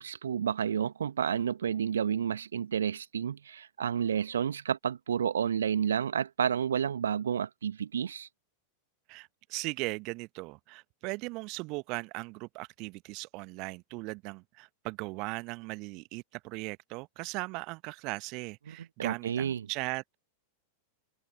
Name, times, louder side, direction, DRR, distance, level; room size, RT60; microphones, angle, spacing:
voice 1, 0.0-8.3 18.7-19.7, right 8 dB, 65° right, 2.0 m, -30 dB
voice 2, 9.1-20.2, right 26 dB, 40° right, 1.3 m, -38 dB
figure-of-eight pair, 90°, 0 cm